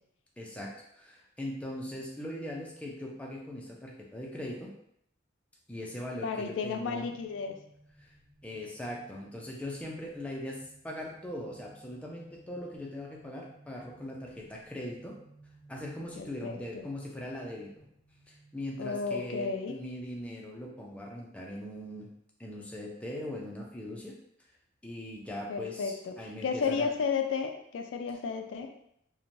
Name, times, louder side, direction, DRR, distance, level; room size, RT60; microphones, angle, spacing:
voice 1, 0.4-4.7 5.7-7.1 8.0-8.1 8.4-15.1 15.7-17.9 18.3-22.1 22.4-24.1 24.8-26.9, left 1 dB, 5° left, -2 dB, 0.4 m, -40 dB
voice 2, 6.2-7.6 16.2-16.9 18.8-19.8 25.5-26.1 26.4-28.7, left 5 dB, 90° left, 4 dB, 0.3 m, -33 dB
sound 1, 6.8-19.9, right 2 dB, 55° right, 1.1 m, -60 dB
3.0 x 2.1 x 2.6 m, 0.73 s
head